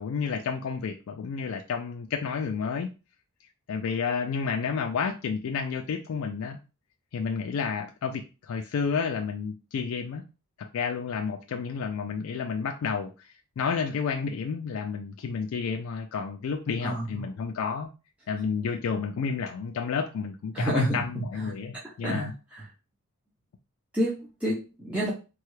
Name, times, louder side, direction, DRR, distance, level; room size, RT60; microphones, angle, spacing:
voice 1, 0.0-2.9 3.7-6.6 7.1-10.2 10.6-17.9 18.3-22.3, left 5 dB, 70° left, 4 dB, 0.3 m, -31 dB
voice 2, 20.5-21.0 22.0-22.6 23.9-25.1, equal, 5° right, -8 dB, 0.6 m, -28 dB
3.2 x 2.3 x 3.1 m, 0.31 s
head